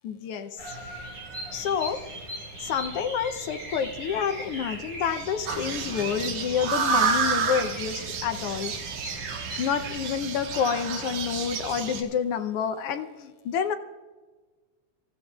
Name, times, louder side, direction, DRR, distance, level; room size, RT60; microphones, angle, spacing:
voice 1, 0.0-0.5 1.5-2.0 2.6-8.7 9.6-13.7, left 7 dB, 85° left, 6 dB, 1.2 m, -28 dB
Bird vocalization bird call bird song, 0.6-9.9, right 1 dB, 40° right, 6.1 m, -39 dB
sound 1, 5.5-12.0, right 5 dB, 75° right, 2.9 m, -30 dB
26.0 x 15.0 x 2.4 m, 1.3 s
omnidirectional pair, 3.5 m